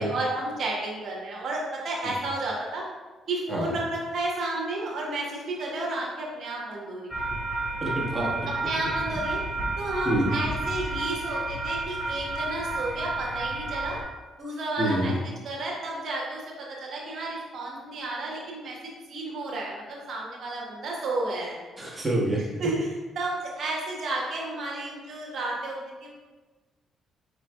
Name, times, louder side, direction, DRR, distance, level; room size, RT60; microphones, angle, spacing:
voice 1, 0.0-2.8 3.3-7.2 8.5-9.4 9.8-14.0 14.4-15.1 15.4-21.6 22.6-22.9 23.2-26.1, right 2 dB, 55° right, -2 dB, 1.0 m, -32 dB
sound 1, 7.1-14.0, right 2 dB, 15° left, 1.0 m, -31 dB
voice 2, 7.8-8.5 10.0-10.3 14.8-15.1 21.8-22.4, right 1 dB, 20° right, -4 dB, 1.3 m, -27 dB
4.6 x 3.8 x 2.2 m, 1.3 s
hypercardioid pair, 45°, 0 cm